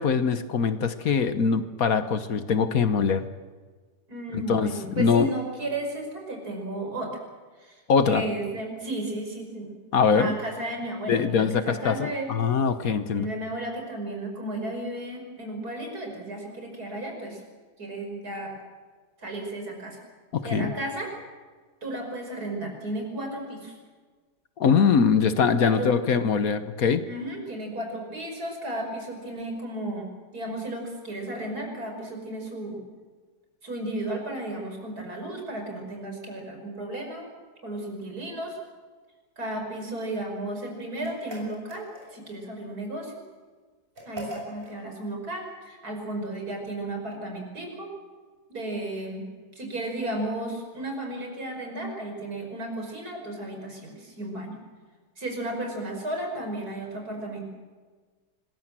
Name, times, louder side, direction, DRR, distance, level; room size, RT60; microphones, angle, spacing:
voice 1, 0.0-3.2 4.3-5.3 7.9-8.2 9.9-10.3 11.1-13.3 20.3-20.7 24.6-27.0, left 6 dB, 60° left, 11 dB, 1.4 m, -23 dB
voice 2, 4.1-7.1 7.6-7.8 8.1-9.8 10.1-12.3 13.1-17.4 17.8-18.5 19.2-20.0 20.4-21.1 21.8-23.8 25.6-25.9 27.1-32.8 33.6-37.3 37.6-38.6 39.4-43.2 44.0-47.9 48.5-49.3 49.5-54.6 55.2-57.4, right 1 dB, 65° right, 2 dB, 5.9 m, -34 dB
sound 1, 41.0-42.3 44.0-44.8, equal, 30° right, 7.1 m, -40 dB
25.5 x 21.5 x 7.5 m, 1.4 s
omnidirectional pair, 1.8 m